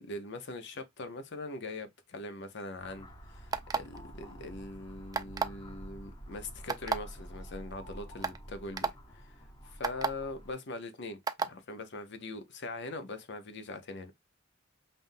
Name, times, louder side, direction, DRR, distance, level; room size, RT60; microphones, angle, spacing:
voice 1, 0.0-9.3 9.6-11.2 11.5-14.1, left 2 dB, 60° left, 0.8 m, -42 dB
sound 1, 2.8-10.5, equal, 20° left, 1.1 m, -48 dB
sound 2, 3.5-4.0 5.1-5.6 6.7-7.0 7.7-7.8 8.2-8.4 8.8-8.9 9.8-10.1 11.3-11.5, right 4 dB, 20° right, 0.3 m, -30 dB
5.4 x 2.6 x 2.6 m
head